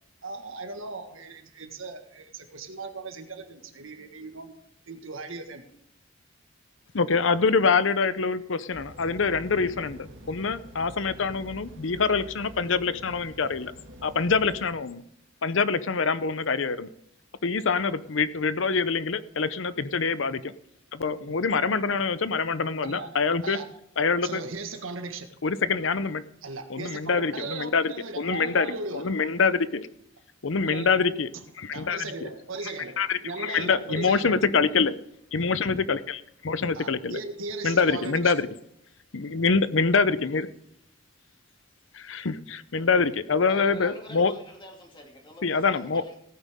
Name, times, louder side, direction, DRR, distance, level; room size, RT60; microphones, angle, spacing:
voice 1, 0.2-4.5 4.9-5.6 21.1-21.3 22.8-23.2 23.4-23.7 24.2-25.3 26.4-29.0 30.6-31.0 31.7-34.4 36.7-38.3, right 3 dB, 80° right, 6 dB, 1.7 m, -37 dB
voice 2, 6.9-13.7 14.0-15.0 15.4-16.9 17.4-20.5 20.9-23.6 24.0-24.4 25.4-26.2 26.7-28.7 28.9-29.8 30.4-31.3 31.6-32.3 33.0-35.0 35.3-37.2 37.6-38.5 39.1-40.5 41.9-44.3 45.4-46.0, left 4 dB, 70° left, 14 dB, 0.7 m, -25 dB
sound 1, 8.7-14.7, equal, 65° right, 2.0 m, -46 dB
voice 3, 43.5-46.2, left 1 dB, 25° left, 1 dB, 2.6 m, -45 dB
17.5 x 9.2 x 3.6 m, 0.79 s
head